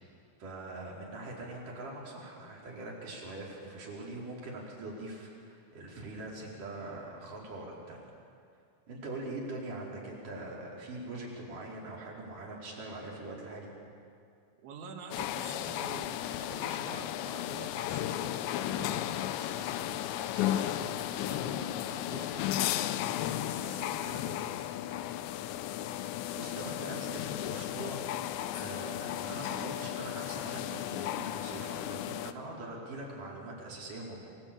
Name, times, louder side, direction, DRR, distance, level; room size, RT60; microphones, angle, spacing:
voice 1, 0.4-8.0 8.9-13.7 26.1-28.1 28.5-34.3, right 2 dB, 45° right, -3 dB, 6.0 m, -42 dB
voice 2, 14.6-22.7 23.6-25.1, right 5 dB, 90° right, 4 dB, 4.3 m, -48 dB
sound 1, 15.1-32.3, left 12 dB, 80° left, 3.0 m, -34 dB
26.5 x 19.5 x 8.8 m, 2.4 s
omnidirectional pair, 5.1 m